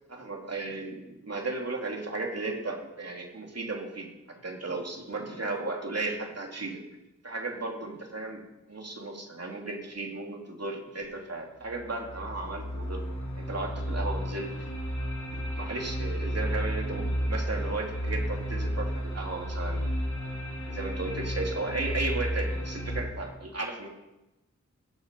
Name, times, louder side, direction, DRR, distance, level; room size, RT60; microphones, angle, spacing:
voice 1, 0.1-6.8 7.2-8.4 8.7-13.0 13.4-14.7 15.3-19.9 20.7-23.9, right 3 dB, 55° right, 1 dB, 3.0 m, -35 dB
sound 1, 11.0-11.1 11.6-23.0, equal, 70° left, 3.1 m, -32 dB
21.5 x 7.4 x 5.4 m, 0.98 s
wide cardioid pair, 60°, 30 cm